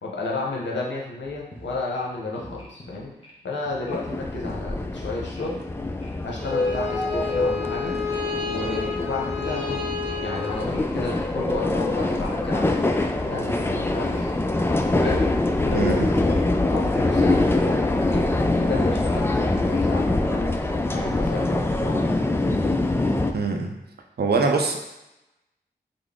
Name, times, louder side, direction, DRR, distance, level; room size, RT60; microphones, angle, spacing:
voice 1, 0.0-3.1 3.4-5.6 6.2-8.0 8.4-9.8 10.2-14.3 15.0-15.2 15.6-20.5 20.9-22.7, left 2 dB, 80° left, -2 dB, 0.8 m, -32 dB
sound 1, 1.2-19.9, left 1 dB, 30° left, 1.0 m, -46 dB
sound 2, 3.9-23.3, left 2 dB, 15° left, 0.3 m, -24 dB
Bowed string instrument, 6.3-11.3, left 4 dB, 50° left, 0.7 m, -31 dB
voice 2, 15.7-16.1 23.3-23.8 24.2-24.8, right 4 dB, 60° right, 3 dB, 0.6 m, -23 dB
3.7 x 2.0 x 3.5 m, 0.95 s
cardioid pair, 45°, 18 cm